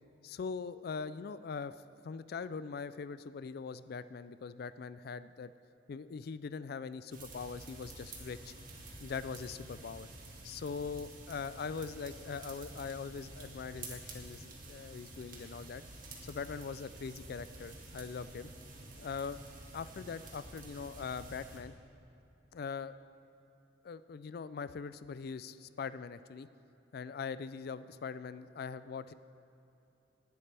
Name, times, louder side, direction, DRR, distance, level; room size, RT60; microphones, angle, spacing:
voice 1, 0.2-1.7 2.0-5.5 5.9-8.5 9.0-10.1 10.4-15.8 16.2-18.5 19.0-19.4 19.7-21.7 22.5-23.0 23.8-26.5 26.9-29.1, left 5 dB, 55° left, 14 dB, 0.4 m, -42 dB
sound 1, 7.1-21.6, right 2 dB, 50° right, 1.8 m, -50 dB
17.5 x 11.0 x 3.4 m, 2.9 s
head